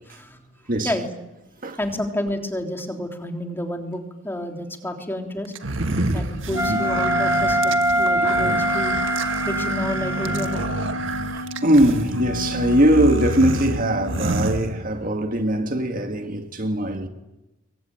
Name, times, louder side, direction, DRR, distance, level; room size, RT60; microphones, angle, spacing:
voice 1, 0.1-0.5 0.8-1.0 1.8-5.5 6.1-9.0 9.4-10.7, left 1 dB, 10° left, 3.4 m, -30 dB
sound 1, 5.5-15.2, right 2 dB, 70° right, 1.7 m, -28 dB
voice 2, 5.8-6.3 6.7-6.8 8.1-8.3 11.3-17.1, right 1 dB, 45° right, 1.9 m, -21 dB
Wind instrument woodwind instrument, 6.5-14.6, left 2 dB, 60° left, 1.0 m, -31 dB
Wind instrument woodwind instrument 2, 6.5-10.8, right 1 dB, 15° right, 2.4 m, -24 dB
28.0 x 23.5 x 9.0 m
head